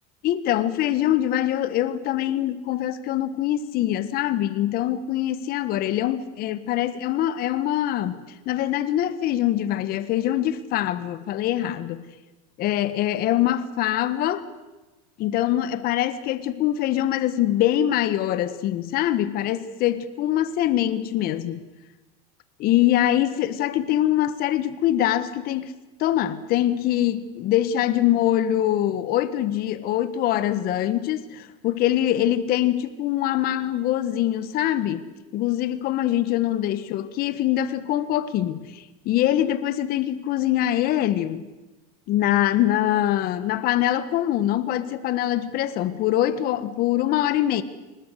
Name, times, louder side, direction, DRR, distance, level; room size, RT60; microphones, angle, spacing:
voice 1, 0.2-12.1 12.6-14.4 15.2-21.6 22.6-25.7 26.0-35.0 35.3-41.4 42.1-47.6, left 12 dB, 50° left, 1.5 m, -23 dB
23.5 x 20.5 x 8.1 m
supercardioid pair, 115°, 20 cm